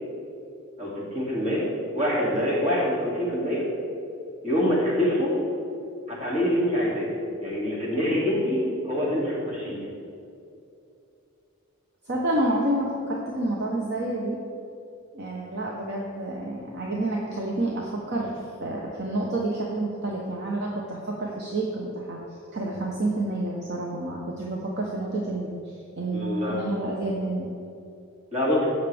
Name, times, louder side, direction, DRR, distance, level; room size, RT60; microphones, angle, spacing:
voice 1, 0.8-1.6 1.9-3.7 4.4-5.3 6.1-7.1 7.4-9.8 26.1-26.6 28.3-28.6, equal, 35° right, -5 dB, 2.7 m, -25 dB
voice 2, 12.0-14.4 15.1-18.3 18.6-22.2 22.5-27.5, right 1 dB, 50° right, -2 dB, 1.0 m, -29 dB
16.5 x 6.5 x 3.5 m, 2.6 s
head